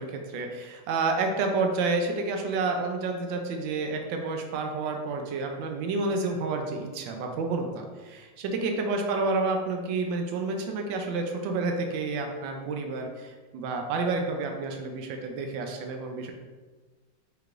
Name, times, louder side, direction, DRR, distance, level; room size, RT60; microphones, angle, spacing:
voice 1, 0.0-16.3, right 3 dB, 85° right, 3 dB, 1.4 m, -29 dB
5.5 x 3.9 x 2.4 m, 1.3 s
omnidirectional pair, 2.0 m